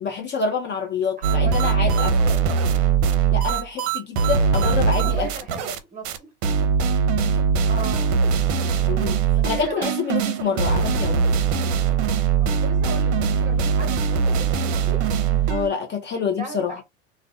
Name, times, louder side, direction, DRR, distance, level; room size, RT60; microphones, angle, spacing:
voice 1, 0.0-2.4 3.3-5.3 8.8-9.2 9.4-11.3 15.5-16.8, left 5 dB, 30° left, 0.6 m, -27 dB
voice 2, 1.2-2.5 4.6-6.3 7.7-8.2 9.3-9.9 12.4-15.0 16.4-16.8, right 4 dB, 20° right, 1.1 m, -36 dB
sound 1, 1.2-5.8 6.0-6.2 6.4-15.7, right 5 dB, 60° right, 0.6 m, -21 dB
2.5 x 2.2 x 2.4 m
hypercardioid pair, 95°, 37 cm